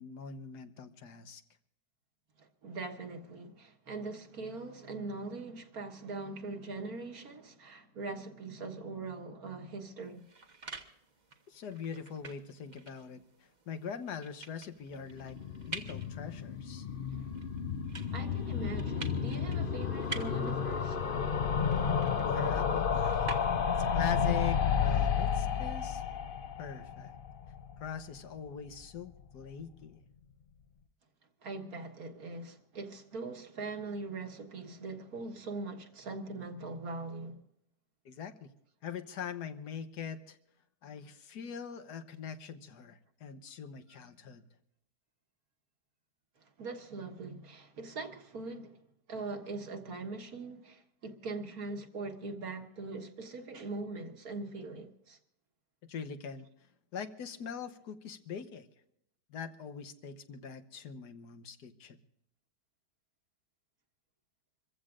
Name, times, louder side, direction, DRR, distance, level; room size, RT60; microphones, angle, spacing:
voice 1, 0.0-1.4 11.5-15.4 15.7-16.9 22.2-23.2 23.8-26.0 26.6-27.2 27.8-30.0 38.0-38.5 38.8-40.4 40.8-44.4 55.9-56.5 56.9-58.7 59.3-62.0, left 7 dB, 75° left, 1.6 m, -42 dB
voice 2, 2.4-10.3 18.1-21.0 31.4-37.4 46.4-48.8 49.1-55.2, right 3 dB, 60° right, 1.9 m, -41 dB
sound 1, 10.0-23.9, right 3 dB, 30° right, 1.1 m, -48 dB
sound 2, 15.1-28.2 28.5-28.6 28.8-28.9 29.1-29.2, left 7 dB, 45° left, 0.7 m, -32 dB
27.0 x 15.0 x 2.5 m
omnidirectional pair, 1.8 m